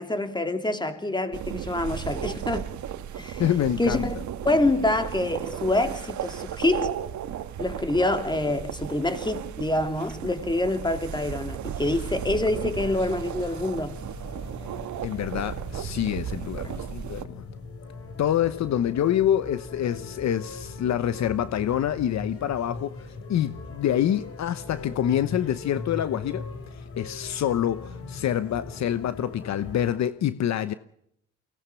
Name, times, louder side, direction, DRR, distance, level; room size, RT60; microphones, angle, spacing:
voice 1, 0.0-2.7 3.2-3.4 3.8-4.2 4.4-7.0 7.6-14.0 16.6-16.7, left 2 dB, 15° left, 2.9 m, -26 dB
sound 1, 1.3-17.3, right 9 dB, 70° right, 1.5 m, -35 dB
voice 2, 3.4-4.1 15.0-17.4 18.2-23.0 23.3-26.4 27.0-30.7, left 10 dB, 65° left, 0.9 m, -26 dB
sound 2, 12.4-30.0, left 3 dB, 50° left, 5.0 m, -40 dB
23.5 x 18.5 x 7.0 m
cardioid pair, 90°, 30 cm